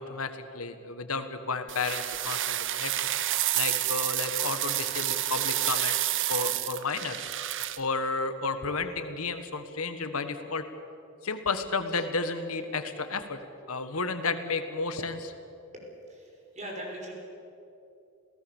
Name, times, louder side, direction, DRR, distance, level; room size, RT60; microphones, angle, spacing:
voice 1, 0.0-3.1 3.5-6.0 6.3-7.3 7.8-10.6 11.2-13.4 13.7-15.3, left 4 dB, 85° left, 9 dB, 1.6 m, -32 dB
sound 1, 1.7-7.8, right 13 dB, 60° right, 0.8 m, -29 dB
voice 2, 15.7-17.1, right 1 dB, 35° right, 0 dB, 5.5 m, -41 dB
27.5 x 17.5 x 7.3 m, 2.8 s
head